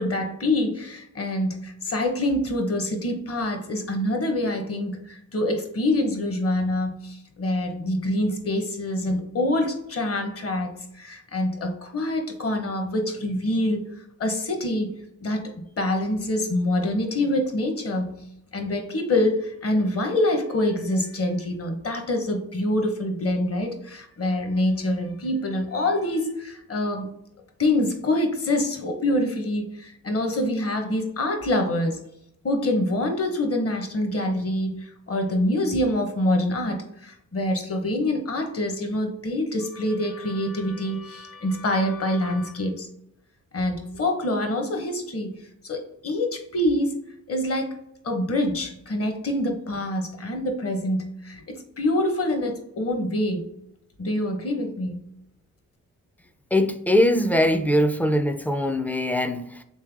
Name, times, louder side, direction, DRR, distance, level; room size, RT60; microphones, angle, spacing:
voice 1, 0.0-13.8 14.2-14.9 15.2-18.1 18.5-27.1 27.6-32.0 32.4-42.9 43.5-45.3 45.6-47.0 47.3-47.8 48.0-53.4 54.0-55.0, left 1 dB, 45° left, 5 dB, 0.9 m, -25 dB
voice 2, 56.5-59.6, left 1 dB, 5° left, 8 dB, 0.3 m, -22 dB
3.3 x 3.3 x 3.4 m, 0.78 s
cardioid pair, 65°, 34 cm